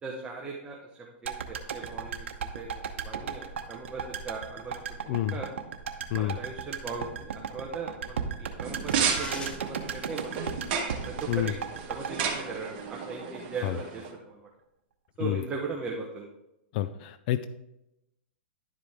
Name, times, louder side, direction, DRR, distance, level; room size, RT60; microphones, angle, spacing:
voice 1, 0.0-0.9 1.2-5.5 6.1-10.6 11.0-11.5 11.9-14.5 15.2-16.3, right 4 dB, 15° right, -1 dB, 0.9 m, -39 dB
sound 1, 1.2-13.4 13.7-13.8, right 7 dB, 80° right, 0.9 m, -36 dB
voice 2, 5.1-5.4 6.1-6.4 11.3-11.5 13.6-13.8 15.2-15.4 16.7-17.5, left 13 dB, 45° left, 13 dB, 0.3 m, -28 dB
sound 2, 8.6-14.1, right 6 dB, 50° right, 1.5 m, -33 dB
sound 3, 8.9-9.5, left 3 dB, 15° left, 0.9 m, -39 dB
11.0 x 5.0 x 3.6 m, 0.90 s
hypercardioid pair, 140°, 7 cm